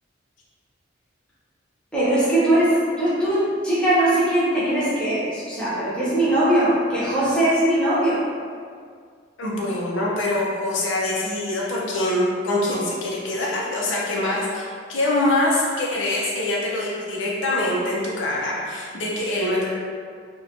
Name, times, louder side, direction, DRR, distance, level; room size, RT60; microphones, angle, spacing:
voice 1, 1.9-8.2, right 1 dB, 5° left, -10 dB, 0.5 m, -20 dB
voice 2, 9.4-19.7, left 1 dB, 75° left, -5 dB, 0.5 m, -24 dB
2.9 x 2.1 x 2.5 m, 2.1 s
head